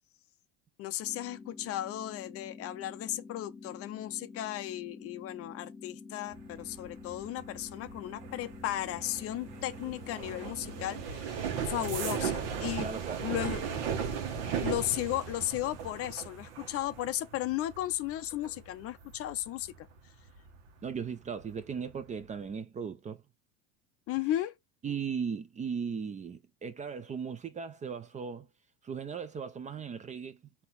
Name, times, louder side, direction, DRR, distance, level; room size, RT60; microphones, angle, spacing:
voice 1, 0.8-12.9 13.2-13.6 14.6-19.9 24.1-24.5, left 14 dB, 40° left, 0.4 m, -35 dB
sound 1, 1.0-11.0, left 4 dB, 20° left, 1.3 m, -48 dB
sound 2, 6.3-20.9 21.3-21.7 22.0-22.4, right 7 dB, 70° right, 1.3 m, -37 dB
voice 2, 12.8-13.2 20.8-23.2 24.8-28.5 28.8-30.4, right 6 dB, 20° right, 0.4 m, -37 dB
3.9 x 2.8 x 4.5 m
supercardioid pair, 115°, 35 cm